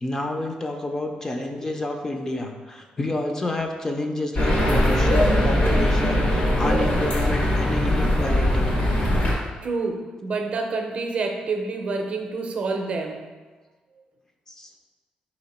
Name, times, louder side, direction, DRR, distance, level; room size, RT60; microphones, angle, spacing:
voice 1, 0.0-8.7 14.5-14.7, left 2 dB, 20° left, 3 dB, 0.4 m, -29 dB
sound 1, 4.3-9.3, equal, 75° left, 1.4 m, -21 dB
voice 2, 9.2-13.2, right 3 dB, 50° right, 3 dB, 0.5 m, -28 dB
4.3 x 3.0 x 4.1 m, 1.3 s
cardioid pair, 120°, 3 cm